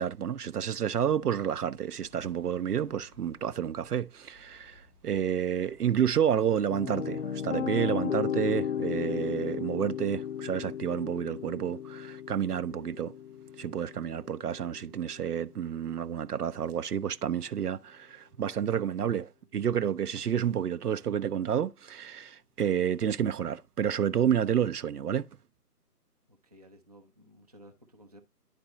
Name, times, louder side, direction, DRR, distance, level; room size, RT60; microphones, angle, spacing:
voice 1, 0.0-13.2 13.6-25.3, right 9 dB, 70° right, 0.6 m, -30 dB
sound 1, 0.8-6.6, left 1 dB, 10° left, 1.0 m, -59 dB
sound 2, 6.7-15.5, left 8 dB, 50° left, 0.5 m, -35 dB
voice 2, 26.3-28.2, equal, 25° right, 0.5 m, -55 dB
10.5 x 4.2 x 3.0 m
figure-of-eight pair, 150°, 48 cm